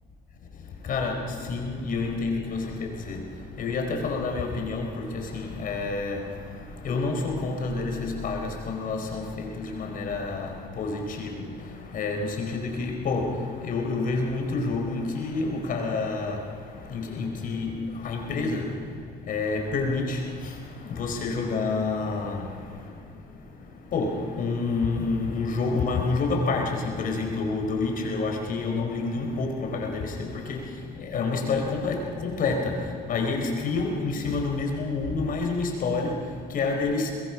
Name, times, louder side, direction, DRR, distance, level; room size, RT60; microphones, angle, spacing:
voice 1, 0.3-37.1, left 3 dB, 55° left, 2 dB, 4.6 m, -29 dB
23.5 x 20.5 x 6.1 m, 2.2 s
cardioid pair, 110°, 17 cm